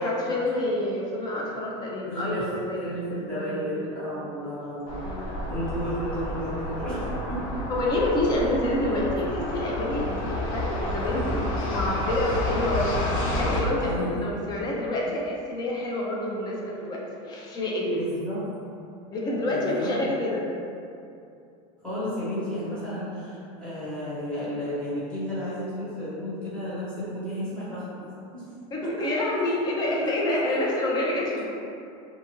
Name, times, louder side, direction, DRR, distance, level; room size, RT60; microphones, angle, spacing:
voice 1, 0.0-3.0 3.3-3.8 4.2-4.5 5.0-5.3 7.7-12.9 13.3-18.0 19.1-20.5 28.7-31.4, left 1 dB, 25° left, -3 dB, 0.4 m, -28 dB
voice 2, 2.0-5.1 5.5-7.7 13.8-14.2 17.9-18.4 19.5-19.9 21.8-28.4 28.8-29.1 30.0-30.4, equal, 5° left, -13 dB, 1.1 m, -33 dB
sound 1, 4.9-13.6, left 1 dB, 90° left, 0.6 m, -30 dB
2.6 x 2.3 x 2.8 m, 2.6 s
supercardioid pair, 150°, 17 cm